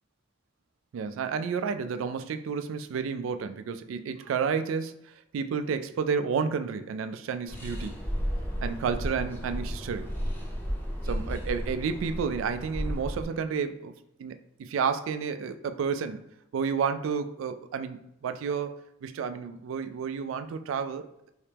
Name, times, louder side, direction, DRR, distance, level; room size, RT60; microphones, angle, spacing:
voice 1, 0.9-4.9 5.3-8.0 8.6-10.1 11.1-13.9 14.2-16.2 16.5-18.7 19.0-21.3, right 6 dB, 85° right, 9 dB, 0.3 m, -31 dB
sound 1, 7.5-13.2, equal, 10° left, 0.6 m, -33 dB
3.2 x 2.9 x 3.4 m, 0.84 s
head